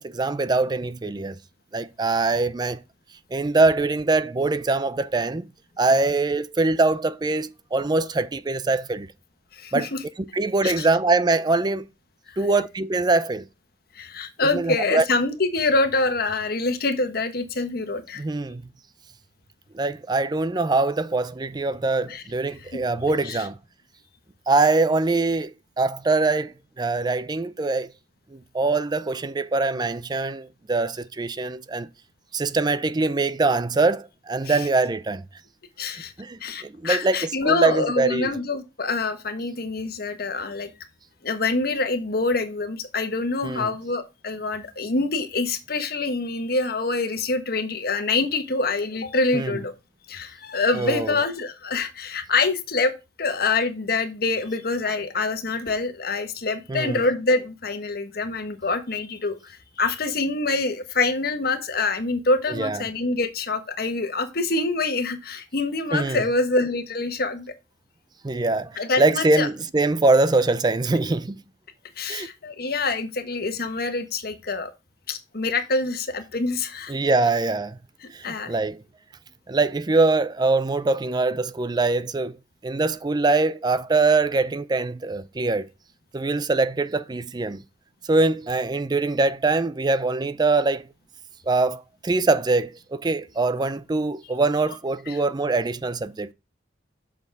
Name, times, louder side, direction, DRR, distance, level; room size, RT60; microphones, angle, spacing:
voice 1, 0.0-1.4 1.7-2.8 3.3-5.5 5.8-9.1 9.7-9.9 10.3-11.8 12.4-13.5 14.5-15.0 18.2-18.6 19.7-23.6 24.5-27.9 28.3-31.9 32.3-35.2 36.2-37.2 37.4-38.3 43.4-43.7 49.3-49.6 50.7-51.2 56.7-57.0 62.5-62.8 65.9-66.2 68.2-71.4 72.1-72.3 76.9-77.8 78.1-78.8 79.5-82.4 82.6-85.6 86.1-87.6 88.1-90.8 91.5-96.3, right 3 dB, 25° right, 0.4 m, -23 dB
voice 2, 9.5-10.0 10.6-10.9 12.3-12.6 13.9-18.2 22.1-22.2 22.7-22.8 23.2-23.5 34.4-34.6 35.8-36.1 36.4-40.7 41.2-49.7 50.1-52.9 53.2-67.5 68.8-69.5 72.0-74.7 75.1-77.0 78.2-78.5 95.1-95.2, left 3 dB, 60° left, 1.3 m, -25 dB
8.0 x 6.3 x 3.5 m
head